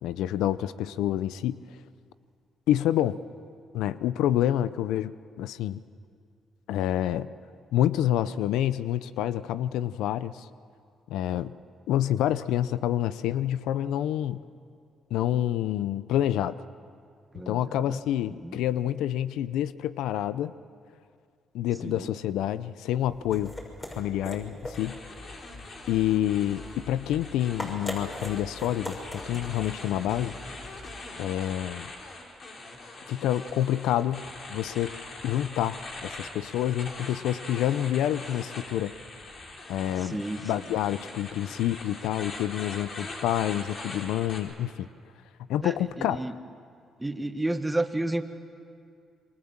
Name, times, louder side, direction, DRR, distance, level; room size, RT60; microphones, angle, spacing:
voice 1, 0.0-1.6 2.7-3.2 3.7-5.8 6.7-7.3 7.7-10.5 11.1-11.5 11.9-14.4 15.1-16.6 17.5-20.5 21.5-23.5 24.0-25.0 25.9-30.4 31.2-31.9 33.1-34.9 35.2-38.9 39.7-44.9 45.5-46.2, left 12 dB, 90° left, 15 dB, 0.6 m, -28 dB
voice 2, 17.3-18.0 18.4-18.6 21.8-22.1 40.0-40.4 45.6-46.3 47.0-48.2, right 1 dB, 10° right, 8 dB, 1.6 m, -31 dB
sound 1, 22.9-31.2, left 1 dB, 20° left, 6.1 m, -41 dB
sound 2, 24.7-44.4, left 2 dB, 50° left, 4.7 m, -42 dB
28.0 x 23.5 x 7.4 m, 2.3 s
cardioid pair, 90°, 0 cm